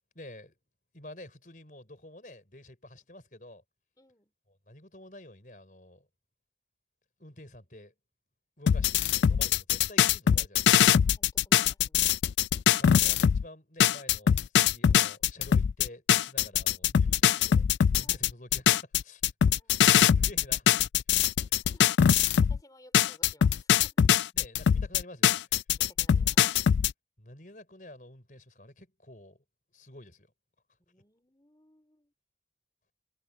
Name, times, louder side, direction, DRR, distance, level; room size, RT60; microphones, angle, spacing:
voice 1, 0.2-0.6 0.9-3.6 4.5-6.1 7.2-7.9 8.6-10.8 12.8-17.7 17.9-19.2 20.1-20.8 24.3-25.5 27.2-29.4 29.7-30.3, left 1 dB, 50° left, 5.2 m, -49 dB
voice 2, 4.0-4.3 11.1-12.1 18.0-18.2 19.5-19.8 21.7-24.1 25.8-26.4 30.9-32.1, left 1 dB, 20° left, 4.2 m, -60 dB
sound 1, 8.7-13.4 13.8-22.6 22.9-26.9, left 9 dB, 90° left, 0.3 m, -23 dB
head